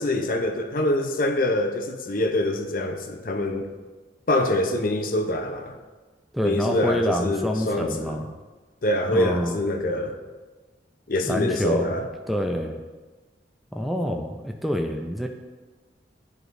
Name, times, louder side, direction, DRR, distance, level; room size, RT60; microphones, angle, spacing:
voice 1, 0.0-3.7 4.3-5.8 6.4-8.2 8.8-10.2 11.1-12.1, left 1 dB, 50° left, 4 dB, 0.7 m, -25 dB
voice 2, 6.3-8.3 9.1-9.6 11.2-11.9 12.3-12.8 13.7-15.3, equal, ahead, 3 dB, 0.4 m, -26 dB
11.0 x 4.8 x 2.6 m, 1.3 s
head